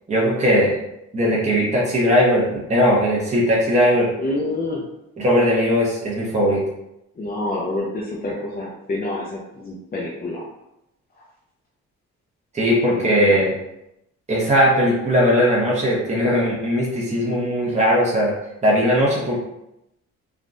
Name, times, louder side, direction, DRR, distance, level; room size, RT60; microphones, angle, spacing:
voice 1, 0.1-0.8 1.1-4.1 5.2-6.6 12.5-13.5 14.3-18.3 18.6-19.4, equal, 25° right, -5 dB, 1.0 m, -19 dB
voice 2, 4.2-4.8 7.2-10.5 12.9-13.4, left 2 dB, 30° left, -5 dB, 0.6 m, -28 dB
3.5 x 2.3 x 2.6 m, 0.86 s
cardioid pair, 90°, 30 cm